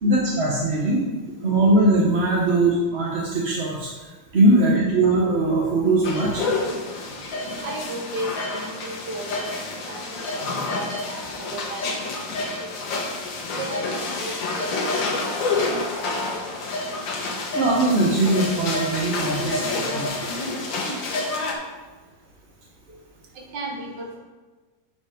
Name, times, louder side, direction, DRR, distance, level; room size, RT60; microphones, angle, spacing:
voice 1, 0.0-1.0 1.4-4.1 4.3-6.3 17.5-19.5 19.9-20.1, right 2 dB, 40° right, -4 dB, 1.1 m, -20 dB
sound 1, 6.0-21.5, left 3 dB, 70° left, 1.8 m, -28 dB
voice 2, 7.6-9.6 9.9-12.5 12.8-12.9 13.6-16.7 23.4-24.2, right 1 dB, 65° right, 0 dB, 2.0 m, -36 dB
8.7 x 5.1 x 5.0 m, 1.3 s
omnidirectional pair, 2.1 m